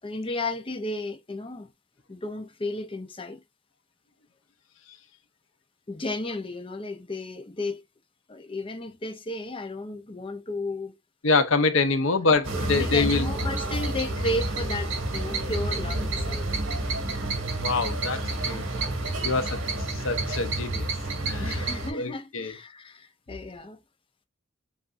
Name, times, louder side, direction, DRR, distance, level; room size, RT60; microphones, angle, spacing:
voice 1, 0.0-1.7 2.1-3.4 5.9-7.8 8.3-10.9 12.6-16.5 19.2-19.5 21.4-23.8, left 2 dB, 25° left, 0.6 m, -33 dB
voice 2, 11.2-13.3 17.6-18.6 19.2-20.9 21.3-21.6 21.9-22.5, left 4 dB, 70° left, 0.8 m, -25 dB
sound 1, 12.4-21.9, right 2 dB, 70° right, 2.0 m, -29 dB
7.1 x 2.6 x 2.5 m
head